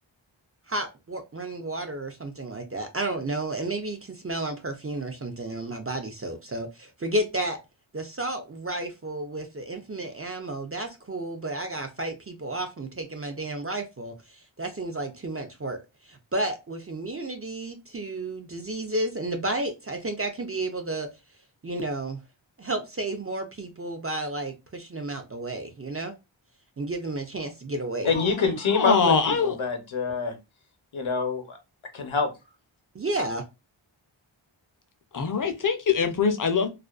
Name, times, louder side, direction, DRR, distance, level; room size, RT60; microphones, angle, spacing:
voice 1, 0.7-7.6 7.9-21.1 21.6-22.2 22.6-26.1 26.8-28.1 32.9-33.4, right 2 dB, 30° right, 0.4 m, -32 dB
voice 2, 28.0-30.3 30.9-31.6 31.9-32.3, left 4 dB, 75° left, 0.8 m, -26 dB
voice 3, 28.7-29.6 35.1-36.7, left 5 dB, 40° left, 0.5 m, -23 dB
2.4 x 2.2 x 2.3 m
wide cardioid pair, 45°, 49 cm